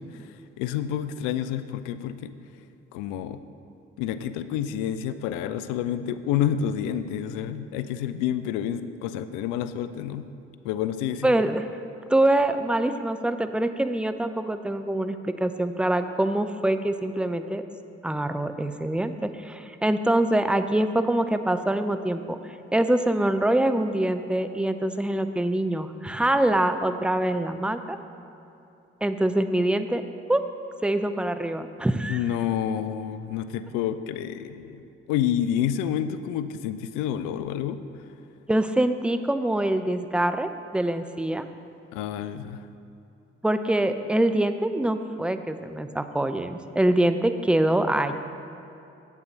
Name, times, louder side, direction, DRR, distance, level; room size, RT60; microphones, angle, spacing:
voice 1, 0.0-2.3 2.9-3.4 4.0-10.3 10.6-11.4 32.1-38.1 41.9-42.7, left 9 dB, 80° left, 12 dB, 0.5 m, -29 dB
voice 2, 11.2-11.6 12.1-17.6 18.0-22.4 22.7-28.0 29.0-30.0 30.3-30.4 30.8-32.2 38.5-41.5 43.4-48.1, right 1 dB, 5° right, 9 dB, 0.5 m, -24 dB
8.0 x 7.2 x 5.3 m, 2.8 s
hypercardioid pair, 40°, 31 cm